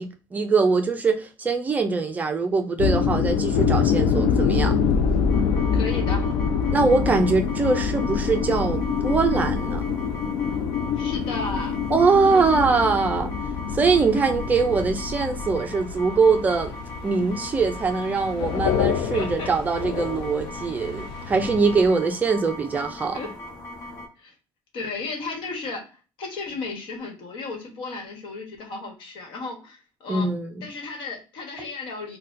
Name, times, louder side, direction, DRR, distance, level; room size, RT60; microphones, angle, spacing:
voice 1, 0.0-4.7 6.7-9.8 11.9-13.3 13.7-16.7 17.0-23.2 30.1-30.6, right 4 dB, 20° right, 0.4 m, -22 dB
sound 1, 2.8-21.9, left 6 dB, 90° left, 0.4 m, -26 dB
sound 2, 5.3-24.1, left 1 dB, 45° left, 0.9 m, -39 dB
voice 2, 5.7-6.3 10.9-11.8 12.3-12.8 19.1-19.5 23.1-23.3 23.8-23.9 24.2-24.3 24.7-25.9 26.2-30.3 30.6-32.2, left 3 dB, 75° left, 1.2 m, -34 dB
4.1 x 2.2 x 2.5 m
cardioid pair, 170°, 8 cm